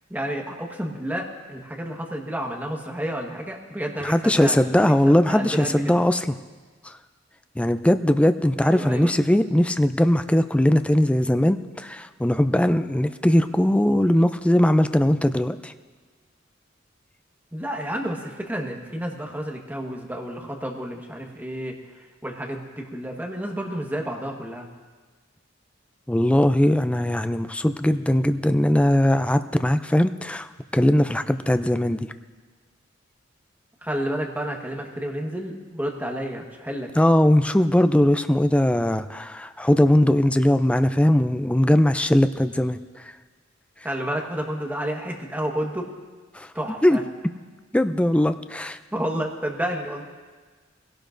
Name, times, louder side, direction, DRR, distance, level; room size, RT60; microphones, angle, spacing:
voice 1, 0.1-6.0 8.6-9.1 17.5-21.7 22.2-24.7 33.8-36.9 43.8-45.9 46.5-47.0 48.9-50.0, equal, 10° right, 0 dB, 1.4 m, -30 dB
voice 2, 4.0-6.3 6.8-6.9 7.6-15.7 26.1-30.5 30.7-32.0 37.0-42.8 46.3-46.5 46.8-47.0 47.7-48.8, left 1 dB, 5° left, 10 dB, 0.4 m, -20 dB
21.5 x 17.0 x 2.6 m, 1.4 s
head